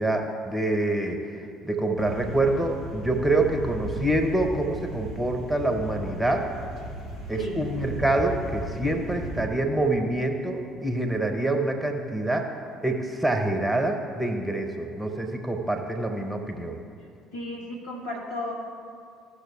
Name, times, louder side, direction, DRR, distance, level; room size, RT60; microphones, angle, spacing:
voice 1, 0.0-6.5 7.3-12.5 12.8-16.8, right 2 dB, 10° right, 3 dB, 1.1 m, -26 dB
sound 1, 2.0-9.5, right 1 dB, 55° left, 1.8 m, -36 dB
voice 2, 17.3-18.5, left 1 dB, 75° left, -4 dB, 1.6 m, -34 dB
15.0 x 6.3 x 3.4 m, 2.4 s
figure-of-eight pair, 55°, 0 cm